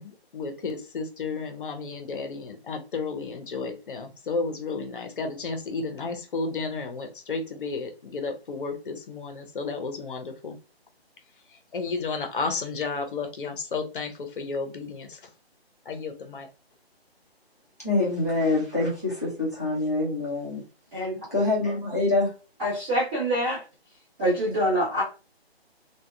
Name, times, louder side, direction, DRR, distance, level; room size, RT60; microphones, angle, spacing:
voice 1, 0.0-10.6 11.7-15.2 15.9-16.5, left 4 dB, 55° left, 5 dB, 0.6 m, -32 dB
voice 2, 17.8-20.6 21.3-22.3, left 2 dB, 15° left, -7 dB, 0.4 m, -25 dB
voice 3, 22.6-23.6 24.2-25.0, equal, 25° right, -11 dB, 1.1 m, -25 dB
2.7 x 2.2 x 2.2 m, 0.32 s
figure-of-eight pair, 155°, 32 cm